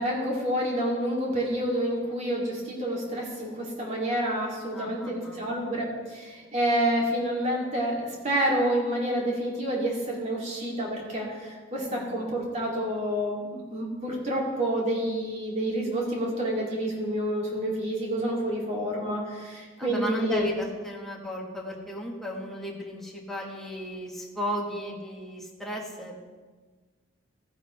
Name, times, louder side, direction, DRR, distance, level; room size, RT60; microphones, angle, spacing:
voice 1, 0.0-20.5, right 1 dB, 35° right, -3 dB, 2.5 m, -28 dB
voice 2, 4.7-5.4 11.9-12.2 19.8-26.3, equal, ahead, -2 dB, 1.4 m, -35 dB
14.5 x 10.0 x 3.2 m, 1.4 s
head